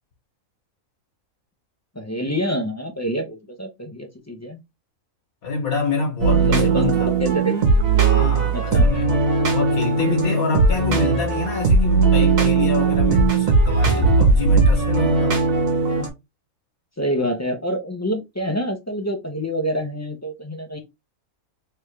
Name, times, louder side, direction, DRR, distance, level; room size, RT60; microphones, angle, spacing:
voice 1, 1.9-4.6 6.3-6.9 7.2-7.6 8.5-8.9 17.0-20.8, equal, 20° left, 0.5 m, -26 dB
voice 2, 5.4-7.1 8.0-9.1 9.5-15.4, left 4 dB, 85° left, 1.7 m, -26 dB
sound 1, 6.2-16.1, right 4 dB, 70° right, 1.6 m, -18 dB
3.5 x 3.3 x 3.2 m
omnidirectional pair, 1.5 m